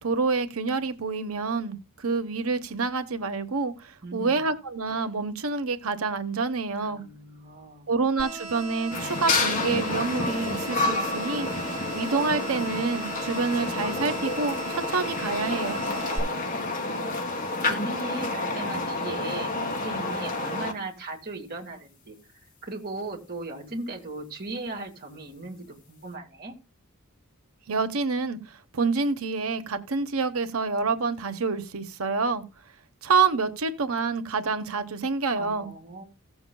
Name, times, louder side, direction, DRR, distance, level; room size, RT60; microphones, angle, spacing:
voice 1, 0.0-7.0 7.9-11.5 11.9-15.9 27.7-32.4 33.0-35.7, right 4 dB, 80° right, 1.0 m, -27 dB
voice 2, 4.0-4.5 6.8-7.9 16.2-17.2 17.6-22.1 22.6-26.5 35.4-36.1, right 2 dB, 45° right, 2.3 m, -38 dB
sound 1, 8.2-16.2, right 3 dB, 20° right, 2.8 m, -38 dB
sound 2, 8.9-20.7, left 2 dB, 40° left, 1.7 m, -29 dB
17.0 x 7.0 x 2.2 m
head